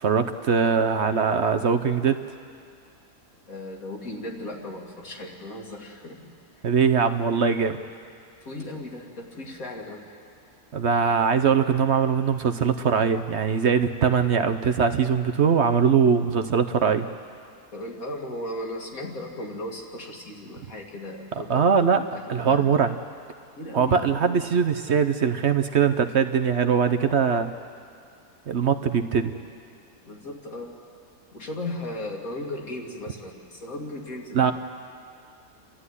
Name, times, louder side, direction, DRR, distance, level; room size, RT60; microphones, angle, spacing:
voice 1, 0.0-2.2 6.6-7.8 10.7-17.1 21.5-22.0 22.3-22.9 23.7-27.5 28.5-29.3 34.3-34.5, right 6 dB, 55° right, 7 dB, 1.0 m, -21 dB
voice 2, 3.5-6.6 8.4-10.0 17.7-21.7 22.1-22.7 23.6-24.5 30.0-30.8 31.3-34.5, left 1 dB, 70° left, 0 dB, 3.0 m, -36 dB
29.5 x 13.0 x 9.8 m, 2.3 s
omnidirectional pair, 1.5 m